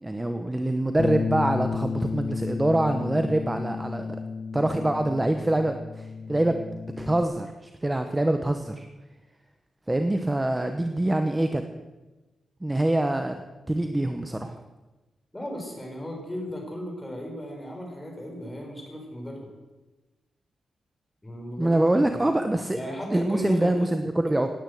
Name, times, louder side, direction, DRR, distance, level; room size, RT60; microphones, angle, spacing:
voice 1, 0.0-4.1 4.5-6.6 7.0-8.9 9.9-11.6 12.6-13.4 13.7-14.6 21.6-22.8 23.1-24.5, right 1 dB, 10° right, 7 dB, 0.9 m, -25 dB
Bass guitar, 1.0-7.2, left 5 dB, 40° left, 0.7 m, -32 dB
voice 2, 15.3-19.5 21.2-22.2 22.7-23.9, equal, 10° left, 0 dB, 4.4 m, -36 dB
17.5 x 10.0 x 7.9 m, 1.1 s
wide cardioid pair, 155°, 0 cm